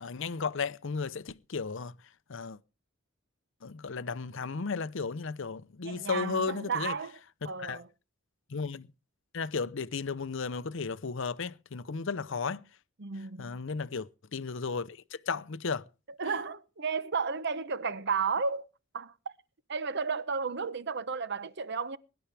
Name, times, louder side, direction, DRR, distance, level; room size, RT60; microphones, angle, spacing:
voice 1, 0.0-1.9 2.3-2.6 3.6-6.9 7.4-7.8 8.5-8.9 9.3-12.6 13.4-15.0 15.3-15.8, left 5 dB, 60° left, 0.7 m, -34 dB
voice 2, 5.8-7.2 7.4-7.9 13.0-13.6 16.2-18.7 18.9-19.1 19.7-22.0, right 5 dB, 55° right, 0.8 m, -33 dB
22.5 x 11.5 x 3.4 m
head